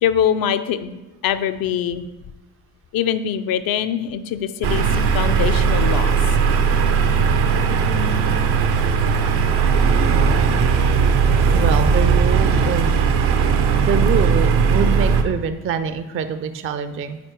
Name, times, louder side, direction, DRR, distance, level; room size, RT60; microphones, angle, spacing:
voice 1, 0.0-2.1 2.9-6.2, left 9 dB, 60° left, 11 dB, 0.5 m, -23 dB
sound 1, 4.6-15.2, right 5 dB, 75° right, 0.7 m, -17 dB
voice 2, 11.5-13.0 13.7-17.2, right 7 dB, 35° right, 11 dB, 0.4 m, -25 dB
9.3 x 4.3 x 3.1 m, 1.0 s
hypercardioid pair, 45°, 42 cm